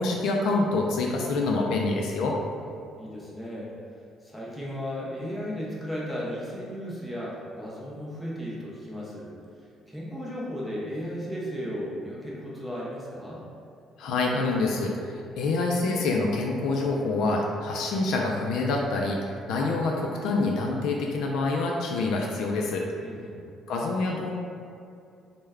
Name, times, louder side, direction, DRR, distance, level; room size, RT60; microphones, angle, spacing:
voice 1, 0.0-2.4 14.0-22.9 23.7-24.3, left 3 dB, 70° left, 0 dB, 0.3 m, -26 dB
voice 2, 3.0-3.7 4.2-9.3 9.9-13.4 23.0-23.4, equal, ahead, -6 dB, 0.5 m, -35 dB
3.2 x 2.1 x 3.4 m, 2.5 s
cardioid pair, 170°, 0 cm